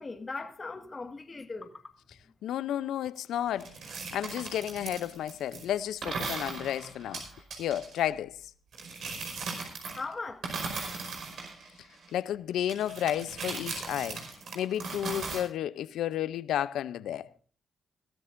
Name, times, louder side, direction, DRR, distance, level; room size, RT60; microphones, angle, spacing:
voice 1, 0.0-1.9 9.9-10.6, left 3 dB, 35° left, 1.6 m, -39 dB
voice 2, 2.4-3.7 4.1-7.3 7.6-8.5 12.1-14.2 14.5-17.3, left 11 dB, 85° left, 0.5 m, -32 dB
sound 1, 3.6-5.6 6.0-8.0 8.7-10.1 10.4-12.1 12.7-15.4, right 4 dB, 70° right, 5.1 m, -38 dB
23.0 x 13.0 x 2.6 m
cardioid pair, 70°, 0 cm